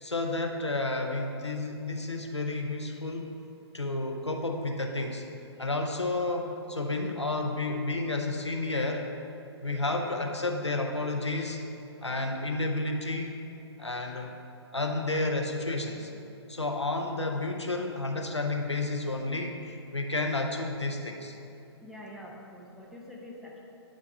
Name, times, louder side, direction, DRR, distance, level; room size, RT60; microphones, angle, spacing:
voice 1, 0.0-3.3 3.7-5.2 5.6-9.1 9.6-11.6 12.0-13.3 13.8-14.3 14.7-16.1 16.5-21.4, left 2 dB, 85° left, 2 dB, 0.8 m, -31 dB
voice 2, 21.8-23.6, left 1 dB, ahead, -4 dB, 0.7 m, -45 dB
9.9 x 3.5 x 5.9 m, 2.8 s
figure-of-eight pair, 125°, 14 cm